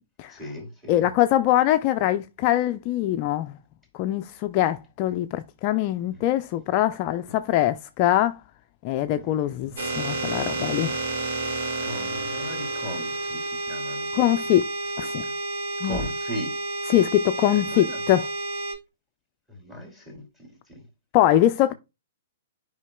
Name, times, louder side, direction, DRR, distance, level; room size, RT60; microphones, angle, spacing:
voice 1, 0.3-1.1 6.1-6.2 9.2-9.9 11.8-14.1 15.2-15.3 15.8-16.5 17.4-18.0 19.5-20.8, equal, 10° right, 2.8 m, -38 dB
voice 2, 0.9-3.6 3.9-8.4 8.8-11.0 14.1-14.7 15.0-15.2 15.8-16.0 16.9-18.3 21.1-21.7, left 13 dB, 40° left, 0.4 m, -23 dB
sound 1, 9.8-18.7, right 2 dB, 65° right, 1.9 m, -30 dB
11.0 x 5.0 x 2.2 m
hypercardioid pair, 120°, 0 cm